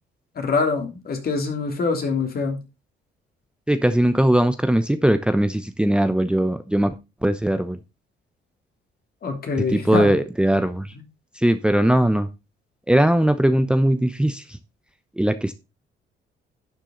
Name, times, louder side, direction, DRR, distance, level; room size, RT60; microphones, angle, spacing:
voice 1, 0.3-2.6 9.2-10.1, left 4 dB, 50° left, 3.2 m, -24 dB
voice 2, 3.7-7.0 7.2-7.8 9.7-10.9 11.4-12.3 12.9-14.6 15.2-15.5, right 1 dB, 5° right, 0.8 m, -20 dB
11.5 x 7.4 x 3.9 m
cardioid pair, 90°, 20 cm